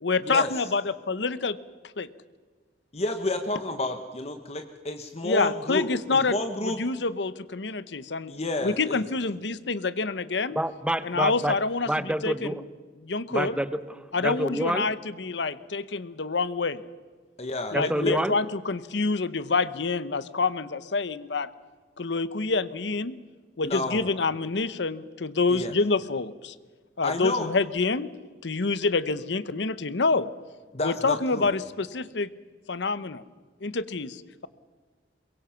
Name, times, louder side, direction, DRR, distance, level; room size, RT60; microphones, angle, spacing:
voice 1, 0.0-1.6 2.0-2.1 5.2-6.4 6.6-8.3 8.6-10.6 11.0-12.6 13.0-13.6 14.1-16.8 17.7-21.5 22.0-23.2 23.6-26.5 27.0-28.1 28.4-30.3 30.8-32.3 32.7-33.2 33.6-34.5, left 3 dB, 70° left, 16 dB, 0.9 m, -27 dB
voice 2, 2.9-5.8 6.1-6.8 8.3-9.0 17.4-18.2 23.6-24.0 25.5-25.7 27.0-27.5 30.7-31.5, left 2 dB, 35° left, 6 dB, 1.2 m, -30 dB
voice 3, 10.5-11.6 11.9-12.6 13.3-14.9 17.7-18.4, right 1 dB, 5° right, 13 dB, 0.9 m, -28 dB
23.5 x 22.0 x 5.8 m, 1.4 s
head